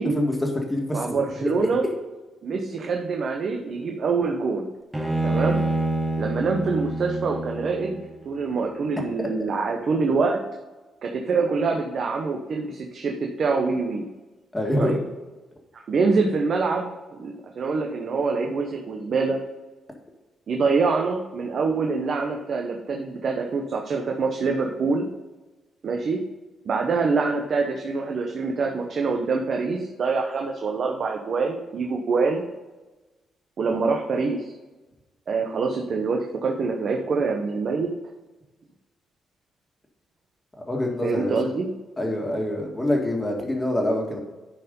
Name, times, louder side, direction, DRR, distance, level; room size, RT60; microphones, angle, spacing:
voice 1, 0.1-1.6 9.2-9.3 14.5-15.0 40.7-41.4 42.0-44.2, left 1 dB, 10° left, 1 dB, 1.9 m, -25 dB
voice 2, 0.9-1.8 2.4-4.7 5.2-5.6 6.2-8.0 8.2-10.4 11.0-14.0 14.8-15.0 15.7-16.9 17.2-19.4 20.5-25.1 25.8-26.2 26.6-32.4 33.6-34.4 35.3-37.9 41.0-41.7, right 4 dB, 50° right, 2 dB, 0.9 m, -25 dB
Bowed string instrument, 4.9-8.2, right 2 dB, 10° right, 1.2 m, -27 dB
10.5 x 4.7 x 5.3 m, 1.2 s
cardioid pair, 110°, 0 cm